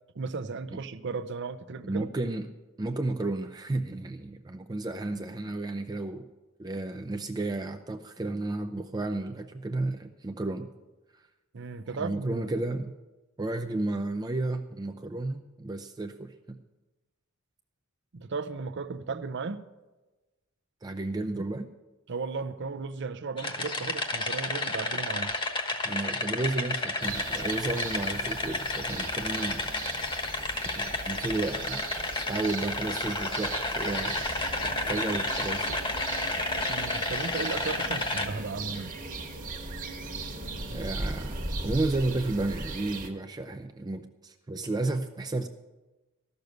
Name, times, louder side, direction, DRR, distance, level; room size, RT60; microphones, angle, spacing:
voice 1, 0.1-2.1 11.5-12.4 18.1-19.6 22.1-25.3 36.7-38.9, right 4 dB, 60° right, 0.6 m, -35 dB
voice 2, 1.8-2.5 2.8-6.3 6.6-10.7 12.0-12.9 13.4-16.6 20.8-21.7 25.8-29.6 30.8-31.8 32.1-34.3 34.6-35.8 40.7-41.4 41.6-45.5, right 2 dB, 20° right, 0.4 m, -32 dB
sound 1, 23.4-38.3, left 2 dB, 25° left, 1.1 m, -31 dB
sound 2, 27.0-43.1, right 3 dB, 40° right, 1.4 m, -38 dB
13.5 x 6.6 x 8.0 m
head